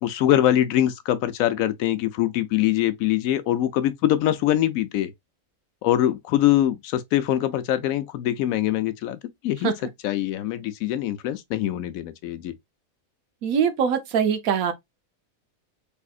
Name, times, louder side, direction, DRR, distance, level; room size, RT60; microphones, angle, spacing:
voice 1, 0.0-5.1 5.8-9.7 10.0-12.5, left 12 dB, 80° left, 1.0 m, -23 dB
voice 2, 13.4-14.7, right 7 dB, 80° right, 1.2 m, -22 dB
3.5 x 3.3 x 2.4 m
omnidirectional pair, 1.5 m